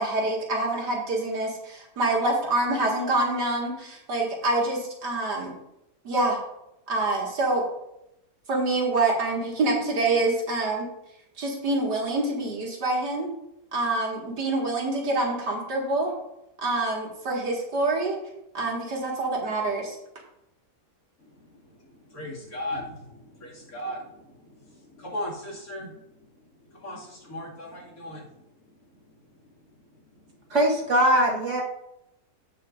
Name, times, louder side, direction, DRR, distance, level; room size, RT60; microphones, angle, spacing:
voice 1, 0.0-5.5 6.0-6.4 6.9-7.6 8.5-10.9 11.4-13.3 13.7-16.1 16.6-18.2 18.5-20.0, right 2 dB, 85° right, -2 dB, 2.6 m, -26 dB
voice 2, 21.8-25.9 26.8-28.3, left 1 dB, 60° left, -5 dB, 2.9 m, -37 dB
voice 3, 30.5-31.6, right 1 dB, 45° right, -1 dB, 1.8 m, -21 dB
16.0 x 5.8 x 2.6 m, 0.84 s
omnidirectional pair, 1.8 m